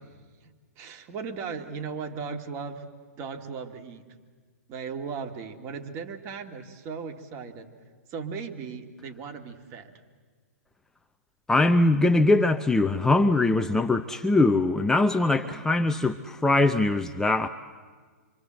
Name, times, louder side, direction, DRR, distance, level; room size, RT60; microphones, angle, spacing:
voice 1, 0.4-2.8 3.2-4.0 4.7-7.7 8.1-9.9 15.3-15.6, right 5 dB, 30° right, 2.5 m, -37 dB
voice 2, 11.5-17.5, left 2 dB, 5° left, 0.7 m, -22 dB
26.0 x 26.0 x 7.8 m
hypercardioid pair, 130°, 9 cm